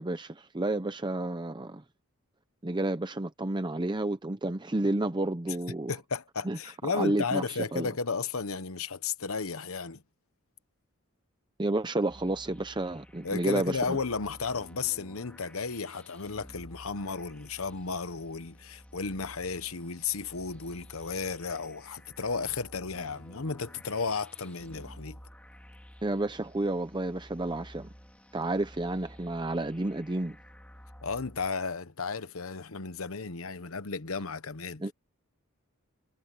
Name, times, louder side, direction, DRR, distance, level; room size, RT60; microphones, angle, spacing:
voice 1, 0.0-1.8 2.6-5.9 6.4-6.6 6.8-7.9 11.6-14.0 26.0-27.9 28.3-30.4 34.8-34.9, right 2 dB, 20° right, 0.7 m, -31 dB
voice 2, 5.9-10.0 13.2-25.2 31.0-34.8, left 4 dB, 75° left, 1.1 m, -34 dB
sound 1, 12.1-31.5, equal, 5° left, 2.9 m, -52 dB
head